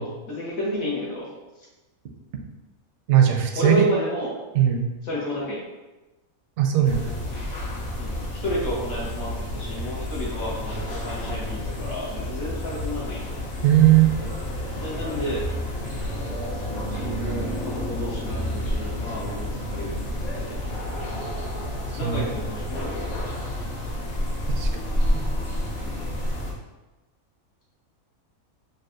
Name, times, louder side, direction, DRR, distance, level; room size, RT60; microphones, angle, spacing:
voice 1, 0.0-1.3 3.5-4.3 5.0-5.6 8.0-13.3 14.8-15.5 16.9-20.0 20.4-20.8 21.9-23.3 25.8-25.9, equal, 70° left, -6 dB, 1.3 m, -31 dB
voice 2, 3.1-3.9 4.5-4.8 6.6-7.1 13.6-14.1 22.0-22.3 24.6-24.7 25.1-25.2, right 11 dB, 65° right, 2 dB, 0.8 m, -18 dB
sound 1, 6.8-26.5, left 1 dB, 50° left, 1.0 m, -30 dB
6.4 x 2.3 x 2.5 m, 1.1 s
omnidirectional pair, 1.6 m